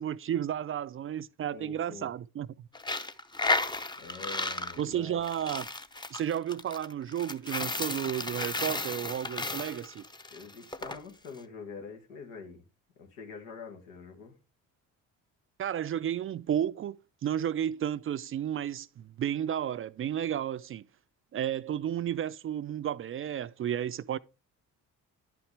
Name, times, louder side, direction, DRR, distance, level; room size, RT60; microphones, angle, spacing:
voice 1, 0.0-2.5 4.8-5.7 6.1-10.0 15.6-20.8 21.3-24.2, right 10 dB, 35° right, 0.4 m, -32 dB
voice 2, 1.5-2.1 4.0-5.2 10.3-12.6 13.0-14.3, left 5 dB, 90° left, 1.7 m, -45 dB
Coin (dropping), 2.7-11.0, left 2 dB, 10° left, 0.7 m, -34 dB
10.5 x 5.9 x 3.3 m
hypercardioid pair, 60°, 39 cm